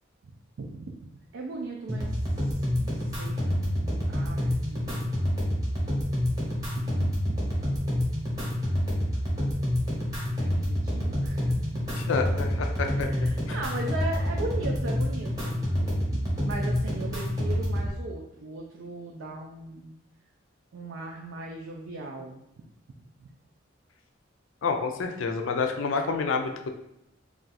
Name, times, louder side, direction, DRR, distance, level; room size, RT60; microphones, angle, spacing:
voice 1, 0.6-0.9 1.3-2.1 2.4-2.5 2.8-5.1 6.7-7.4 10.4-11.7 12.9-19.9 20.7-22.4 23.2-23.3, right 2 dB, 75° right, 0 dB, 0.4 m, -38 dB
sound 1, 1.9-17.9, equal, 20° right, 0.8 m, -28 dB
voice 2, 12.0-13.1 13.5-13.6 24.6-26.7, left 4 dB, 75° left, 4 dB, 0.4 m, -28 dB
2.4 x 2.3 x 4.0 m, 0.81 s
head